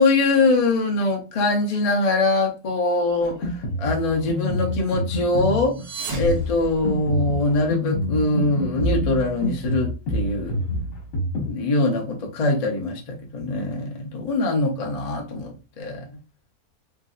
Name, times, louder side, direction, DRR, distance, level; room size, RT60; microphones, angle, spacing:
voice 1, 0.0-3.5 3.8-5.8 6.1-10.6 11.5-16.1, left 2 dB, 75° left, 0.3 m, -23 dB
Drum kit, 3.2-11.5, left 1 dB, 55° left, 1.3 m, -27 dB
sound 1, 5.6-7.5, right 1 dB, 85° right, 1.7 m, -33 dB
3.5 x 2.6 x 2.4 m
omnidirectional pair, 1.8 m